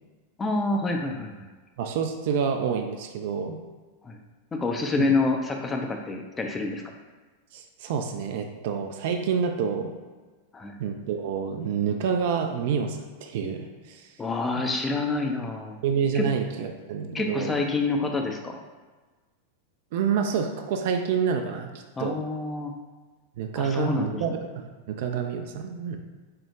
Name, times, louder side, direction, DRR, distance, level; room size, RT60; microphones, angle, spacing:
voice 1, 0.4-1.5 4.0-4.2 4.5-6.8 10.5-10.8 14.2-15.8 16.1-16.2 17.1-18.6 22.0-22.7 23.6-24.2, left 3 dB, 15° left, 2 dB, 0.4 m, -27 dB
voice 2, 1.8-3.6 5.0-5.1 7.5-9.9 10.8-14.1 14.6-14.7 15.8-17.6 19.9-22.2 23.4-26.0, right 6 dB, 50° right, 4 dB, 0.3 m, -28 dB
4.4 x 2.1 x 3.5 m, 1.3 s
figure-of-eight pair, 90°, 0 cm